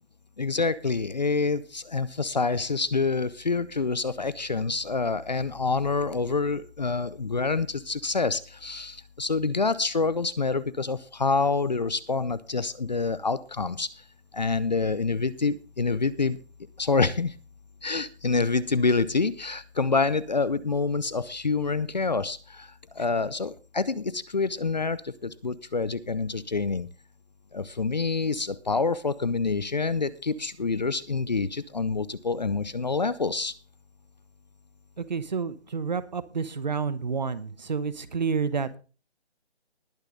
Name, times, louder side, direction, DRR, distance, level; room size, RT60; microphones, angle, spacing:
voice 1, 0.4-14.0 14.3-16.4 16.8-17.4 17.8-26.9 27.5-33.5, left 4 dB, 40° left, 19 dB, 0.6 m, -27 dB
voice 2, 35.1-38.7, right 5 dB, 40° right, 16 dB, 1.0 m, -29 dB
20.0 x 6.8 x 3.8 m, 0.35 s
hypercardioid pair, 170°, 33 cm